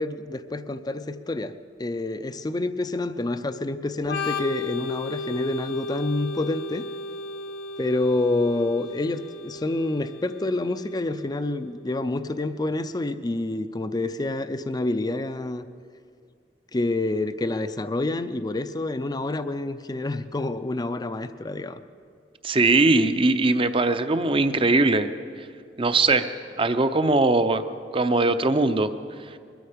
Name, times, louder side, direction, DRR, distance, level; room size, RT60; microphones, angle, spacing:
voice 1, 0.0-1.5 1.8-6.9 7.8-15.6 16.7-21.8, left 2 dB, 25° left, 11 dB, 0.5 m, -28 dB
Organ, 4.0-11.5, left 3 dB, 75° left, 1.5 m, -35 dB
voice 2, 22.4-25.1 25.4-25.5 25.8-26.3 26.6-27.6 27.9-28.9, right 3 dB, 30° right, 10 dB, 0.6 m, -20 dB
22.0 x 13.0 x 5.1 m, 2.2 s
head